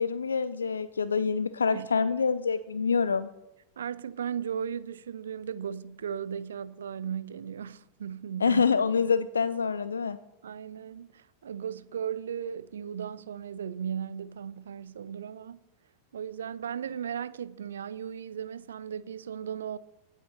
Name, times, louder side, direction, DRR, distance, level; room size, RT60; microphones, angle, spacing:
voice 1, 0.0-3.3 8.4-10.2, left 5 dB, 75° left, 0.3 m, -26 dB
voice 2, 3.8-8.6 10.4-15.6 16.1-19.8, right 8 dB, 65° right, 0.4 m, -36 dB
16.5 x 8.2 x 3.0 m
figure-of-eight pair, 90°, 0 cm